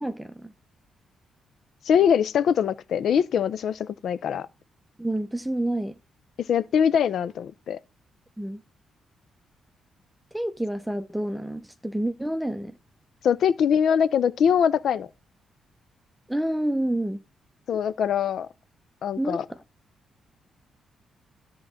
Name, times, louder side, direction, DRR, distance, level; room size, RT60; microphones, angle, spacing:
voice 1, 0.0-0.5 5.0-6.0 8.4-8.6 10.3-12.7 16.3-17.2 19.2-19.6, right 1 dB, 5° right, 0.6 m, -28 dB
voice 2, 1.8-4.5 6.4-7.8 13.2-15.1 17.7-18.5 19.0-19.4, left 8 dB, 70° left, 0.5 m, -23 dB
11.5 x 3.9 x 7.0 m
cardioid pair, 70°, 0 cm